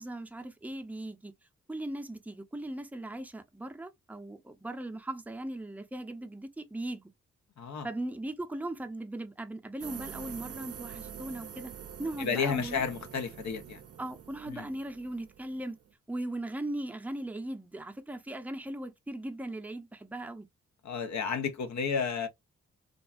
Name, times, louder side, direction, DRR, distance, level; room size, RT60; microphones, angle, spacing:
voice 1, 0.0-1.3 1.7-7.0 7.8-11.7 12.0-12.9 14.0-15.8 16.1-20.5, right 1 dB, 5° right, 0.6 m, -38 dB
voice 2, 7.6-7.9 12.2-13.8 14.5-14.7 20.8-22.3, left 6 dB, 65° left, 0.7 m, -32 dB
sound 1, 9.8-15.9, right 8 dB, 50° right, 0.5 m, -46 dB
2.5 x 2.3 x 2.3 m
supercardioid pair, 40°, 30 cm